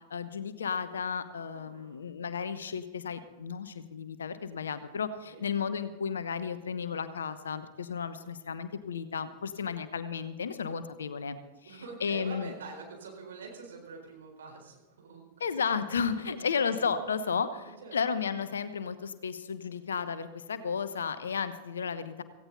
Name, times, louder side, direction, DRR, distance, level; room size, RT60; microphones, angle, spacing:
voice 1, 0.1-11.4 12.0-12.5 15.4-22.2, left 6 dB, 70° left, 12 dB, 1.0 m, -33 dB
voice 2, 1.5-2.0 5.3-5.4 8.1-8.3 9.5-9.8 11.6-15.3 16.2-16.6 17.6-18.0, right 4 dB, 65° right, 1 dB, 4.5 m, -46 dB
17.0 x 16.0 x 4.0 m, 1.1 s
figure-of-eight pair, 90°, 0 cm